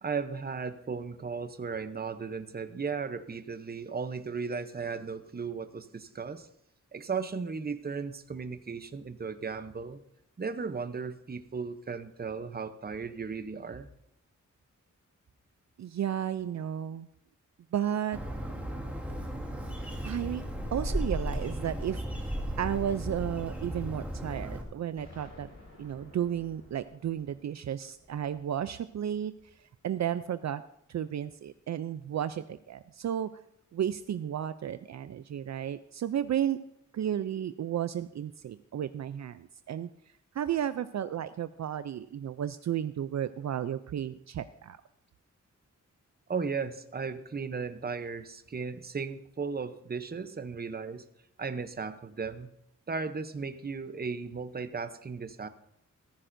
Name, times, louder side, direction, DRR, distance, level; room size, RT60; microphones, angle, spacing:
voice 1, 0.0-6.5 6.9-10.0 10.4-13.9 46.3-51.1 51.4-52.5 52.9-55.5, right 5 dB, 30° right, 11 dB, 0.7 m, -36 dB
voice 2, 15.8-17.1 17.7-18.2 20.0-20.4 20.7-25.5 25.8-30.6 30.9-33.3 33.7-36.6 36.9-39.9 40.3-44.8, right 10 dB, 65° right, 12 dB, 0.4 m, -33 dB
Bird, 18.1-24.6, equal, 5° right, 2.0 m, -35 dB
Explosion, 25.0-29.8, left 2 dB, 55° left, 6.0 m, -54 dB
14.5 x 14.5 x 2.6 m, 0.76 s
wide cardioid pair, 120°, 30 cm